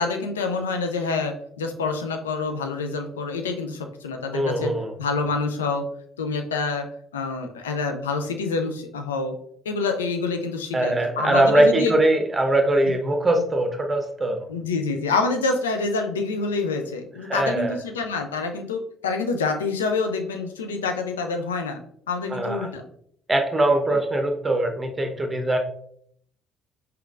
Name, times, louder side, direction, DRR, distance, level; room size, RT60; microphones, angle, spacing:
voice 1, 0.0-4.7 5.0-5.8 6.2-6.9 7.1-9.4 9.6-12.0 14.5-21.8 22.1-22.8 23.9-24.0, left 4 dB, 80° left, 5 dB, 0.4 m, -27 dB
voice 2, 4.3-4.9 10.7-14.4 17.3-17.7 22.3-22.6 23.3-25.6, right 1 dB, 25° right, 4 dB, 0.8 m, -21 dB
4.3 x 3.6 x 2.4 m, 0.65 s
figure-of-eight pair, 50°, 0 cm